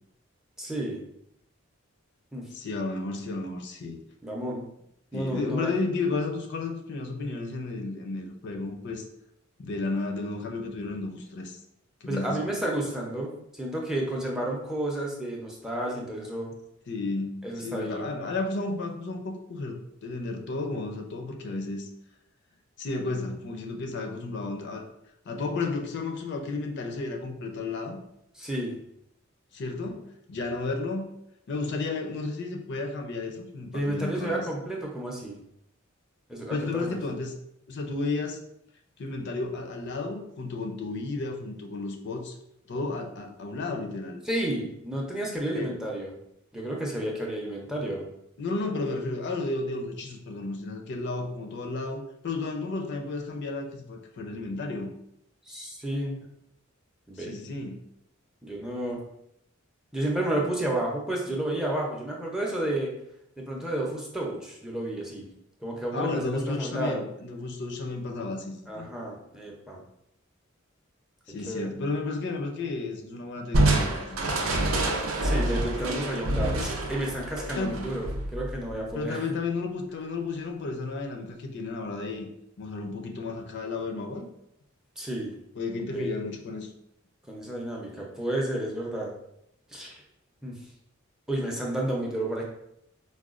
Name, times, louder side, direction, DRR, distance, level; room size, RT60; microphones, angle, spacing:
voice 1, 0.6-1.0 2.3-2.5 4.2-4.6 5.1-5.7 12.1-16.5 17.4-18.1 28.3-28.7 33.7-35.4 36.3-37.0 44.2-46.1 46.5-48.0 55.5-56.1 57.1-57.4 58.4-59.0 59.9-62.9 63.4-65.3 65.6-67.0 68.7-69.8 71.4-71.7 75.2-79.2 85.0-85.3 85.9-86.1 87.3-89.1 89.7-89.9 90.4-90.5 91.3-92.4, right 1 dB, 5° right, -1 dB, 0.5 m, -31 dB
voice 2, 2.5-4.0 5.1-9.0 9.6-11.6 12.0-12.5 16.9-21.9 22.8-24.9 25.3-28.0 29.5-31.1 31.5-34.5 36.5-37.3 37.7-38.4 39.0-42.3 42.7-44.2 45.5-45.7 48.4-54.9 57.2-57.8 65.9-68.9 71.3-74.3 77.6-77.9 78.9-82.3 82.6-84.3 85.5-86.7, left 3 dB, 55° left, 3 dB, 0.5 m, -33 dB
Crushing, 73.5-78.9, right 1 dB, 85° right, 0.5 m, -27 dB
4.6 x 2.2 x 2.4 m, 0.78 s
head